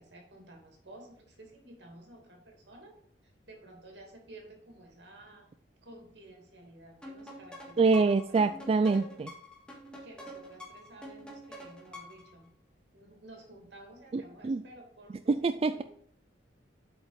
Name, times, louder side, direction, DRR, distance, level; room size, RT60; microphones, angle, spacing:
voice 1, 0.0-2.9 3.2-5.5 5.8-8.4 10.0-12.5 12.9-15.8, right 1 dB, 70° right, 2 dB, 2.7 m, -52 dB
sound 1, 7.0-12.3, equal, 5° left, 1.8 m, -47 dB
voice 2, 7.8-9.3 14.1-14.6 15.3-15.8, right 4 dB, 35° right, 10 dB, 0.3 m, -26 dB
8.2 x 5.1 x 4.8 m, 0.66 s
head